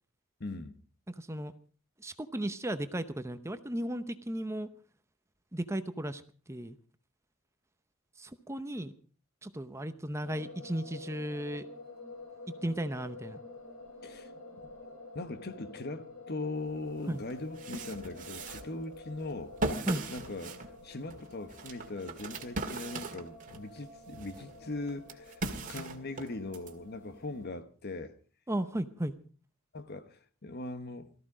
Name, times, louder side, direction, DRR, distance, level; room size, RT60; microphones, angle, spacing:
voice 1, 0.4-0.8 14.0-14.3 15.1-19.5 20.1-20.6 20.8-25.4 25.7-28.1 29.7-31.1, left 2 dB, 50° left, 1.3 m, -40 dB
voice 2, 1.1-1.5 2.0-4.7 5.5-6.8 8.2-8.9 9.4-11.7 12.6-13.4 17.1-17.2 19.9-20.0 28.5-29.1, right 1 dB, 15° right, 0.7 m, -35 dB
sound 1, 10.2-27.5, left 2 dB, 80° left, 5.2 m, -49 dB
sound 2, 16.8-16.9 17.3-23.7 24.1-26.7, right 2 dB, 40° right, 2.0 m, -39 dB
18.0 x 14.0 x 5.0 m
head